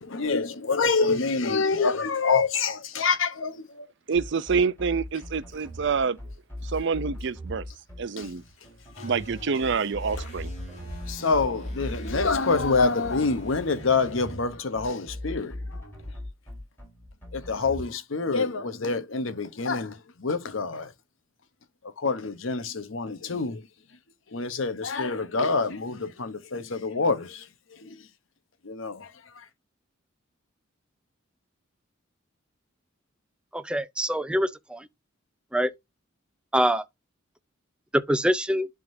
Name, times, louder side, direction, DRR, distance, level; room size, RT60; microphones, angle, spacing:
voice 1, 0.0-3.9 8.2-8.3 11.1-15.5 17.3-20.9 22.0-23.6 24.3-27.4 27.8-27.9 28.7-29.1, left 4 dB, 75° left, 0.9 m, -26 dB
sound 1, 4.1-17.8, left 1 dB, 10° left, 4.2 m, -39 dB
voice 2, 4.1-6.2 6.6-7.6 8.0-8.4 9.0-10.5, right 5 dB, 60° right, 0.5 m, -27 dB
sound 2, 8.9-14.3, right 1 dB, 35° left, 3.1 m, -42 dB
voice 3, 33.5-34.9 35.5-35.7 36.5-36.8 37.9-38.7, equal, 5° right, 0.5 m, -24 dB
11.0 x 3.6 x 2.6 m
head